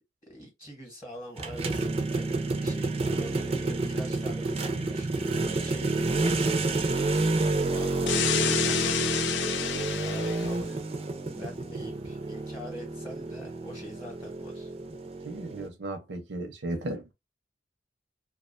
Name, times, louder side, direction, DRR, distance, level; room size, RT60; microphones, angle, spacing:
voice 1, 0.2-6.8 7.7-9.0 10.0-10.8 11.3-14.7, equal, 20° left, 0.9 m, -44 dB
sound 1, 1.4-15.7, right 2 dB, 35° right, 0.4 m, -29 dB
sound 2, 8.1-10.5, left 8 dB, 90° left, 0.4 m, -29 dB
voice 2, 15.2-17.1, right 2 dB, 75° right, 0.6 m, -35 dB
2.4 x 2.2 x 2.4 m
head